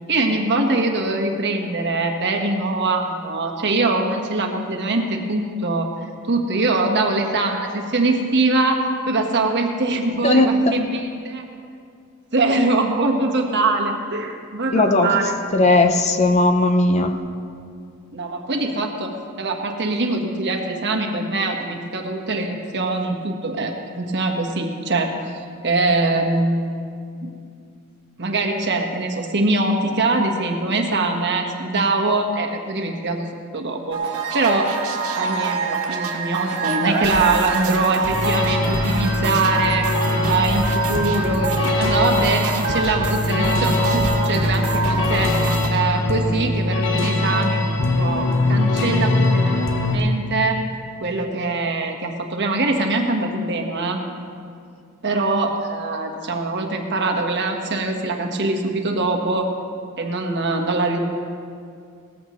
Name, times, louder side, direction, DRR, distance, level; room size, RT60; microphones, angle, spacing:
voice 1, 0.1-11.4 12.3-15.4 18.1-26.7 27.2-27.3 28.2-34.7 35.1-39.9 40.2-45.3 45.7-49.6 49.9-50.6 51.0-54.0 55.0-59.5 60.0-61.0, right 2 dB, 50° right, 3 dB, 1.4 m, -23 dB
voice 2, 10.1-10.8 14.7-17.1, left 2 dB, 30° left, 6 dB, 0.7 m, -17 dB
sound 1, 33.9-45.7, right 4 dB, 70° right, 1.7 m, -26 dB
sound 2, 38.1-50.0, left 2 dB, 60° left, 1.1 m, -22 dB
18.5 x 14.0 x 3.1 m, 2.3 s
head